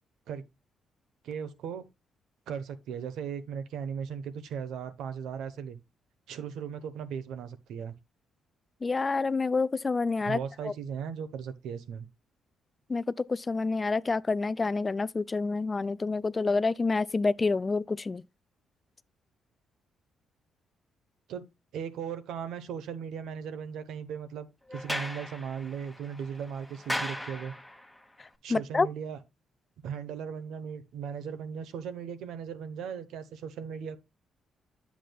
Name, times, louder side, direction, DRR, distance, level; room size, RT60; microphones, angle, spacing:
voice 1, 1.2-1.8 2.5-5.8 6.3-7.9 10.2-12.1 21.3-21.5 21.7-27.5 28.4-29.2 29.8-34.0, right 7 dB, 80° right, 0.9 m, -37 dB
voice 2, 8.8-10.4 10.6-10.7 12.9-18.2 28.5-28.9, left 3 dB, 30° left, 0.3 m, -28 dB
Sliding door, 24.7-28.0, left 1 dB, ahead, 1.3 m, -37 dB
9.1 x 7.2 x 2.2 m
cardioid pair, 90°, 0 cm